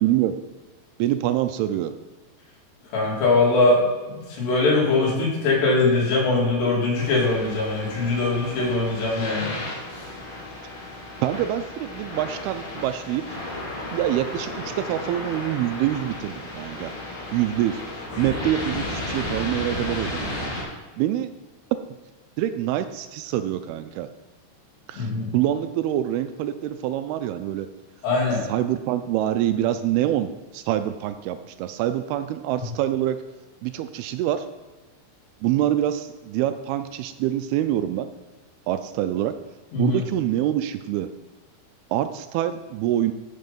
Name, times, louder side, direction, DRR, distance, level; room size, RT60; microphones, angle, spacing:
voice 1, 0.0-0.3 1.0-1.9 11.2-13.2 13.9-14.5 14.8-16.9 17.3-17.8 18.2-20.5 21.0-21.3 22.4-24.1 24.9-25.1 25.3-27.7 28.5-33.2 33.6-34.4 35.4-38.1 38.7-39.3 39.8-41.1 41.9-43.1, right 12 dB, 85° right, 10 dB, 2.3 m, -25 dB
voice 2, 2.9-3.8 4.4-9.5 24.9-25.3 28.0-28.4 39.7-40.0, left 3 dB, 75° left, -4 dB, 5.0 m, -21 dB
sound 1, 6.9-20.6, left 1 dB, 45° left, 5.3 m, -34 dB
13.5 x 5.6 x 5.3 m, 1.3 s
omnidirectional pair, 4.9 m